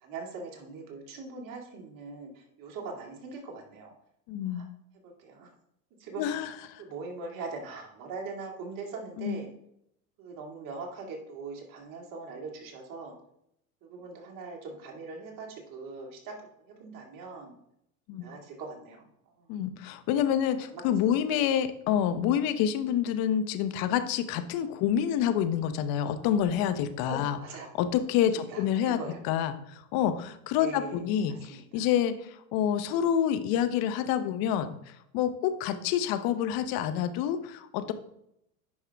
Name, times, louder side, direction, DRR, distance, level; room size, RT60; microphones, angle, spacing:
voice 1, 0.0-3.9 4.5-4.7 5.2-5.5 6.0-6.4 6.8-9.5 10.2-13.1 13.8-16.3 16.8-17.6 18.1-19.1 19.4-19.5 20.7-20.8 27.1-27.7 28.3-29.2 30.5-31.1 31.5-31.9 35.7-36.0, right 4 dB, 50° right, 1 dB, 2.4 m, -41 dB
voice 2, 4.3-4.7 6.2-6.8 9.2-9.4 18.1-18.3 19.5-27.4 27.8-29.0 29.2-37.9, left 9 dB, 55° left, 10 dB, 1.0 m, -28 dB
9.6 x 5.5 x 3.5 m, 0.77 s
hypercardioid pair, 95°, 42 cm